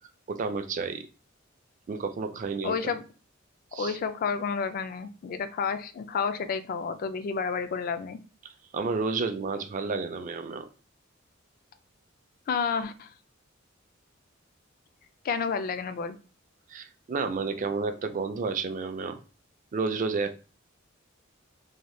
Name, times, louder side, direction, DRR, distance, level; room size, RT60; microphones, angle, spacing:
voice 1, 0.3-1.1 1.9-2.9 3.7-4.0 8.4-10.7 16.7-19.2 19.7-20.4, right 4 dB, 40° right, 0.4 m, -31 dB
voice 2, 2.6-3.0 3.8-8.2 12.5-13.1 15.2-16.2, left 5 dB, 45° left, 0.3 m, -30 dB
2.7 x 2.2 x 3.1 m
head